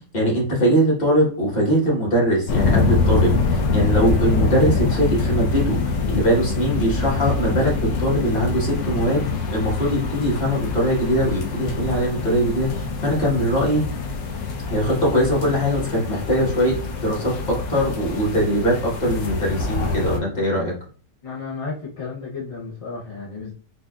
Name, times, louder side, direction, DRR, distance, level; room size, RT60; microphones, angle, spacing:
voice 1, 0.1-13.8 14.7-20.7, equal, 30° left, -4 dB, 1.2 m, -21 dB
sound 1, 2.5-20.2, left 4 dB, 85° left, 1.3 m, -24 dB
voice 2, 21.2-23.5, left 4 dB, 45° left, -6 dB, 0.4 m, -33 dB
4.5 x 2.5 x 2.3 m, 0.43 s
omnidirectional pair, 1.9 m